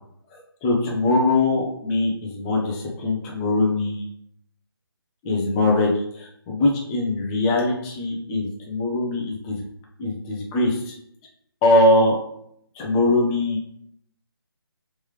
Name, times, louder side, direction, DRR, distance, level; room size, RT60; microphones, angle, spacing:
voice 1, 0.3-4.1 5.2-9.6 10.0-10.9 11.6-12.2 12.8-13.6, left 2 dB, 15° left, 0 dB, 0.5 m, -22 dB
3.2 x 3.2 x 3.2 m, 0.71 s
figure-of-eight pair, 150°, 13 cm